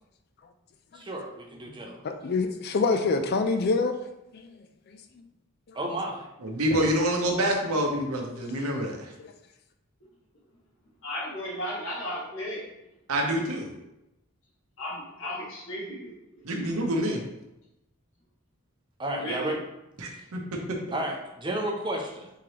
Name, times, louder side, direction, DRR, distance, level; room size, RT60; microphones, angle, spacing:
voice 1, 0.9-2.0 5.7-6.3 19.0-19.6 20.1-20.2 20.9-22.3, right 1 dB, 20° right, 0 dB, 0.5 m, -32 dB
voice 2, 2.0-4.0 4.3-4.5, left 4 dB, 45° left, 7 dB, 0.3 m, -25 dB
voice 3, 6.4-9.1 13.1-13.7 16.4-17.2 20.0-20.4, right 1 dB, 85° right, 1 dB, 0.8 m, -27 dB
voice 4, 11.0-12.7 14.8-16.7 19.2-19.5, equal, 65° left, -6 dB, 1.2 m, -35 dB
3.7 x 3.2 x 2.9 m, 0.90 s
head